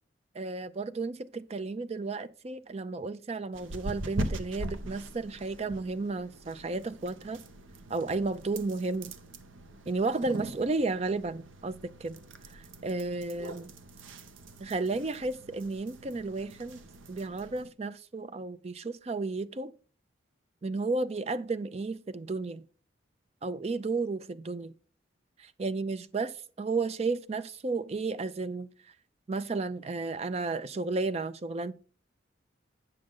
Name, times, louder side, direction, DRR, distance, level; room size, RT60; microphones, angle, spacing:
voice 1, 0.4-7.4 7.9-9.1 9.9-12.2 12.5-13.7 14.6-16.8 17.1-19.7 20.6-22.6 23.4-24.7 25.4-28.7 29.3-31.7, right 3 dB, 30° right, 0.4 m, -33 dB
sound 1, 3.5-17.7, right 1 dB, 85° right, 0.8 m, -42 dB
8.7 x 6.4 x 3.7 m
head